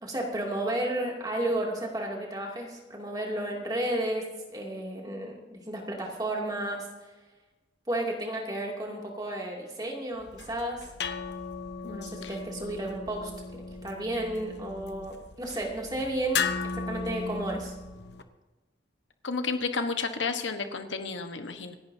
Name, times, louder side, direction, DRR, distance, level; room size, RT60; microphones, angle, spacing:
voice 1, 0.0-6.9 7.9-10.9 11.8-13.3 13.8-17.7, right 1 dB, 20° right, -1 dB, 2.6 m, -32 dB
sound 1, 10.2-18.2, left 5 dB, 65° left, 1.0 m, -36 dB
voice 2, 11.8-12.3 19.2-21.7, left 4 dB, 85° left, 7 dB, 1.3 m, -32 dB
27.0 x 11.0 x 2.8 m, 1.2 s
head